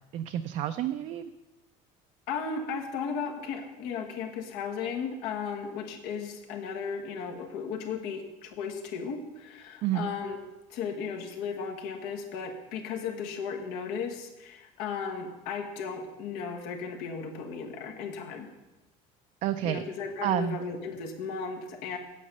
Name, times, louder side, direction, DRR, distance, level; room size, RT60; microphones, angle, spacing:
voice 1, 0.1-1.3 9.8-10.1 19.4-19.8 20.2-20.6, right 11 dB, 50° right, 8 dB, 0.4 m, -29 dB
voice 2, 2.3-10.4 10.7-18.5 19.6-22.0, left 6 dB, 80° left, 3 dB, 1.5 m, -35 dB
8.4 x 8.4 x 5.4 m, 1.1 s
cardioid pair, 145°, 16 cm